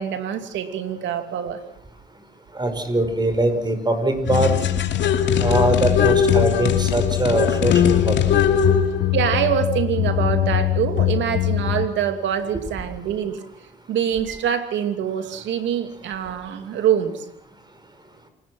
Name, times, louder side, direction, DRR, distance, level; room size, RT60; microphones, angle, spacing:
voice 1, 0.0-1.6 9.1-13.4 13.9-17.1, right 9 dB, 80° right, 7 dB, 2.7 m, -24 dB
voice 2, 2.5-4.5 5.4-8.2, right 2 dB, 25° right, 9 dB, 5.3 m, -22 dB
sound 1, 4.3-11.9, left 9 dB, 75° left, 2.7 m, -20 dB
28.5 x 18.5 x 6.2 m, 0.73 s
cardioid pair, 95°, 19 cm